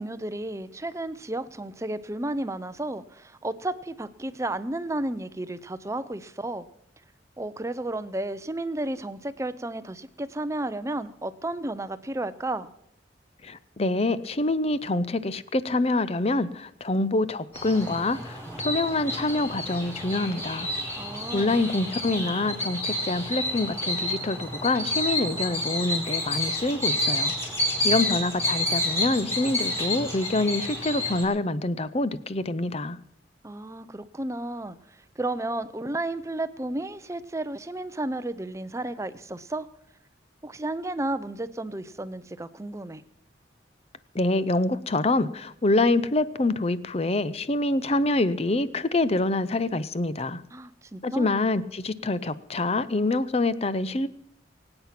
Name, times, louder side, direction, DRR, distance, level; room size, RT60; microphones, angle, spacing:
voice 1, 0.0-6.6 7.4-12.7 21.0-21.6 33.4-39.7 40.4-43.0 50.5-51.3, right 1 dB, 15° right, 13 dB, 0.6 m, -32 dB
voice 2, 13.4-18.4 18.6-20.7 21.3-27.3 27.8-33.0 44.1-50.4 51.0-54.1, left 2 dB, 35° left, 15 dB, 0.6 m, -26 dB
sound 1, 17.5-31.2, left 1 dB, 15° left, 4.8 m, -29 dB
23.5 x 8.9 x 5.9 m, 0.78 s
head